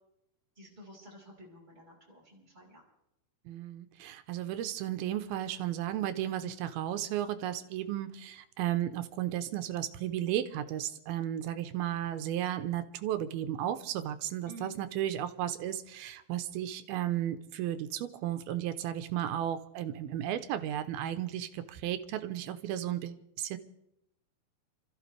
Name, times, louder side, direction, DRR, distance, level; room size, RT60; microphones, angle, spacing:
voice 1, 0.6-2.8 14.5-14.8, right 1 dB, 10° right, -3 dB, 4.9 m, -51 dB
voice 2, 3.5-23.6, right 11 dB, 90° right, 10 dB, 2.7 m, -34 dB
29.0 x 14.0 x 3.4 m, 0.80 s
omnidirectional pair, 4.3 m